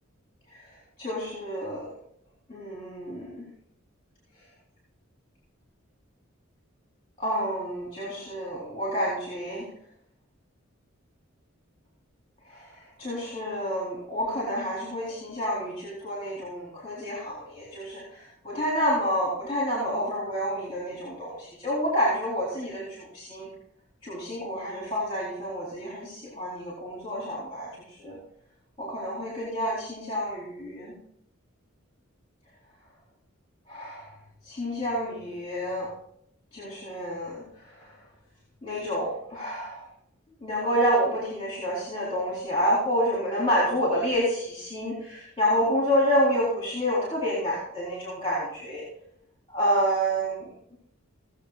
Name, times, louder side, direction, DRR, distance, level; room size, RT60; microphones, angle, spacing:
voice 1, 1.0-1.9 2.5-3.4 7.2-9.6 12.5-12.7 13.0-23.5 24.0-27.7 28.0-28.2 28.8-30.9 33.7-34.1 34.4-35.9 36.5-37.4 38.6-39.9 40.4-48.8 49.5-50.5, equal, 25° left, -4 dB, 4.0 m, -28 dB
18.0 x 7.3 x 4.2 m, 0.68 s
head